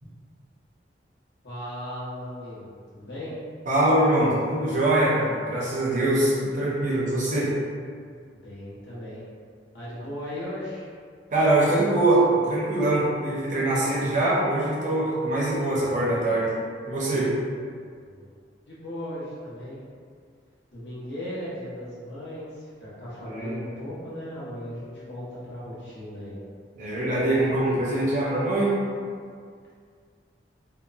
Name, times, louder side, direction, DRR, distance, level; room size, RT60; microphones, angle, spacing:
voice 1, 1.4-3.4 8.4-9.3 9.7-10.9 18.0-18.3 18.7-19.8 20.7-26.4, left 1 dB, 70° left, -9 dB, 0.9 m, -37 dB
voice 2, 3.7-7.5 11.3-16.5 16.9-17.3 23.2-23.6 26.8-28.8, right 1 dB, 45° right, -7 dB, 0.6 m, -23 dB
2.8 x 2.1 x 2.4 m, 2.1 s
head